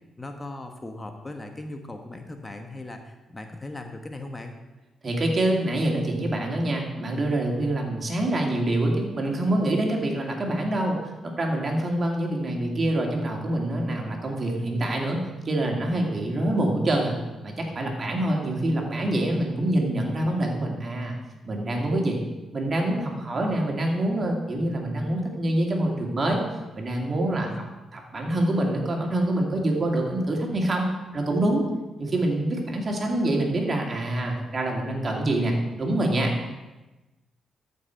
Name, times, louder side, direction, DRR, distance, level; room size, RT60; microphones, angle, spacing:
voice 1, 0.2-4.5 27.3-27.6, left 2 dB, 25° left, 5 dB, 1.2 m, -38 dB
voice 2, 5.0-15.2 15.4-17.1 17.4-21.2 21.4-22.2 22.5-26.4 26.7-27.5 27.9-30.9 31.1-31.6 32.0-36.3, right 1 dB, 45° right, 0 dB, 2.4 m, -25 dB
13.5 x 5.6 x 4.5 m, 1.1 s
hypercardioid pair, 45°, 0 cm